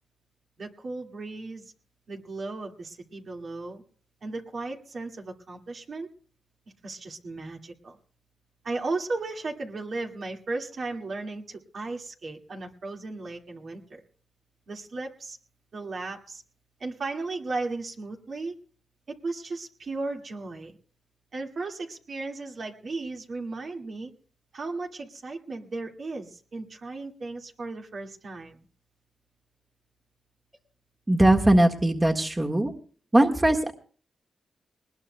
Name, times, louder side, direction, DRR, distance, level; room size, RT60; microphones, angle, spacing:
voice 1, 0.6-1.7 2.1-3.8 4.2-6.1 6.8-8.0 8.6-14.0 14.7-15.4 15.7-16.4 16.8-18.5 19.1-20.8 21.3-24.1 24.5-28.6, right 3 dB, 60° right, 1 dB, 2.0 m, -35 dB
voice 2, 31.1-32.7 33.1-33.7, right 1 dB, 20° right, 2 dB, 1.6 m, -20 dB
20.5 x 19.5 x 2.2 m, 0.41 s
cardioid pair, 70°, 0 cm